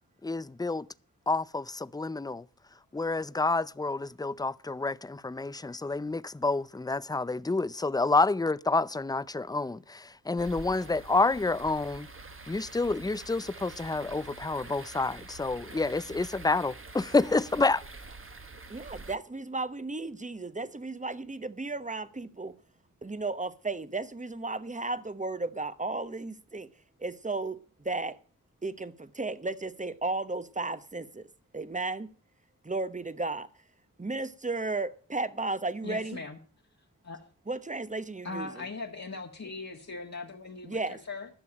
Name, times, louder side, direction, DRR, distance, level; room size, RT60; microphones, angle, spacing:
voice 1, 0.2-0.8 1.3-2.4 2.9-12.1 12.5-17.8, left 3 dB, 10° left, 0.5 m, -29 dB
sound 1, 10.4-19.2, right 3 dB, 35° right, 1.3 m, -46 dB
voice 2, 18.7-22.5 23.0-26.7 27.0-27.6 27.8-28.2 28.6-31.2 31.5-32.1 32.6-33.5 34.0-36.2 37.5-38.6 40.6-41.0, right 3 dB, 20° right, 1.0 m, -34 dB
voice 3, 35.8-36.4 37.0-37.2 38.2-41.3, left 3 dB, 50° left, 1.7 m, -39 dB
12.0 x 6.9 x 8.8 m
wide cardioid pair, 60°, 35 cm